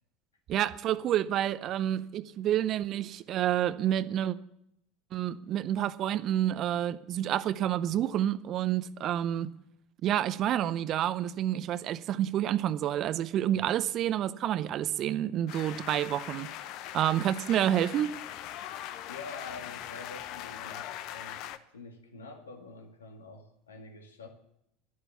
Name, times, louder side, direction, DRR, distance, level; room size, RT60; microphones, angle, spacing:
voice 1, 0.5-4.4 5.1-9.5 10.0-16.5 16.9-18.1, right 11 dB, 40° right, 0.6 m, -29 dB
sound 1, 15.5-21.6, left 12 dB, 50° left, 0.8 m, -41 dB
voice 2, 19.1-24.3, left 3 dB, 75° left, 2.0 m, -47 dB
11.5 x 11.0 x 7.0 m
figure-of-eight pair, 75°, 0 cm